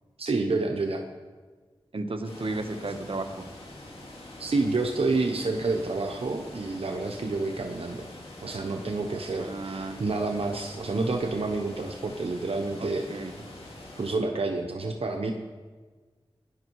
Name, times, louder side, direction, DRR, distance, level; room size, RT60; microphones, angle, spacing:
voice 1, 0.2-1.0 4.4-8.1 8.4-13.3 14.0-15.3, right 3 dB, 90° right, 3 dB, 1.0 m, -29 dB
voice 2, 1.9-3.4 9.4-10.0 12.8-13.6, right 2 dB, 70° right, 5 dB, 1.3 m, -34 dB
sound 1, 2.2-14.1, left 1 dB, 85° left, 3.0 m, -45 dB
18.0 x 11.0 x 4.8 m, 1.4 s
wide cardioid pair, 50°, 10 cm